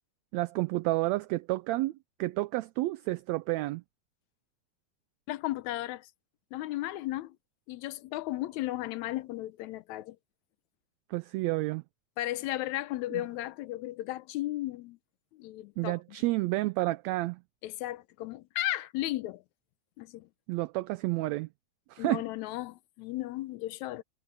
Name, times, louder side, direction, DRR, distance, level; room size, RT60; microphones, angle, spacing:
voice 1, 0.3-3.8 11.1-11.8 13.1-13.2 15.8-17.4 20.5-21.5 21.9-22.2, right 19 dB, 80° right, 1.7 m, -30 dB
voice 2, 5.3-6.1 6.5-7.4 7.7-10.2 12.2-15.0 15.3-16.0 17.6-19.4 20.0-20.3 22.0-24.0, left 16 dB, 80° left, 2.0 m, -35 dB
omnidirectional pair, 3.4 m